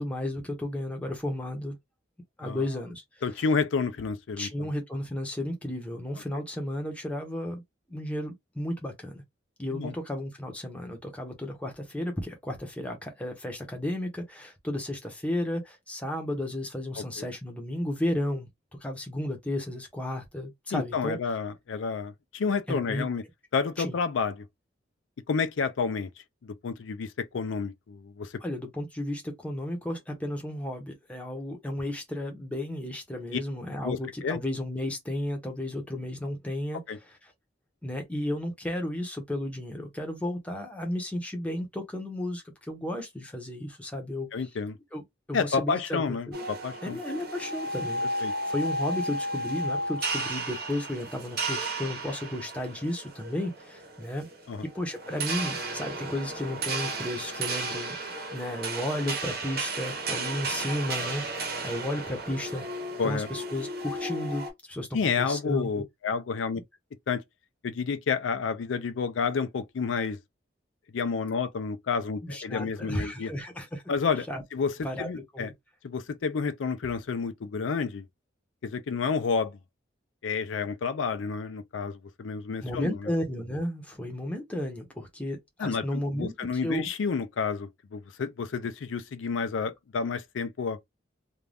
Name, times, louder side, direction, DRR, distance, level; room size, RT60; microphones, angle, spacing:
voice 1, 0.0-1.8 2.4-3.2 4.4-7.6 7.9-9.2 9.6-18.5 18.8-21.2 22.7-23.0 23.8-23.9 28.4-36.8 37.1-37.2 37.8-44.3 44.9-45.0 45.3-46.4 46.8-54.3 54.6-58.0 58.3-62.6 63.0-65.7 72.2-73.8 74.3-74.4 74.8-75.5 82.6-86.3 86.6-86.9, left 1 dB, 5° left, 0.7 m, -33 dB
voice 2, 3.2-4.7 9.7-9.9 17.0-17.1 20.7-23.2 23.5-24.5 25.3-26.1 26.4-28.4 33.3-33.4 33.8-34.4 36.9-37.0 44.3-44.8 45.3-47.0 48.2-48.3 54.5-54.6 63.0-63.3 64.9-66.6 67.1-67.2 67.6-70.2 70.9-73.3 73.9-75.5 75.8-78.1 78.6-79.6 80.2-83.1 85.6-90.8, left 5 dB, 85° left, 0.4 m, -30 dB
sound 1, 46.3-64.5, right 2 dB, 50° right, 1.0 m, -33 dB
2.5 x 2.2 x 3.3 m
head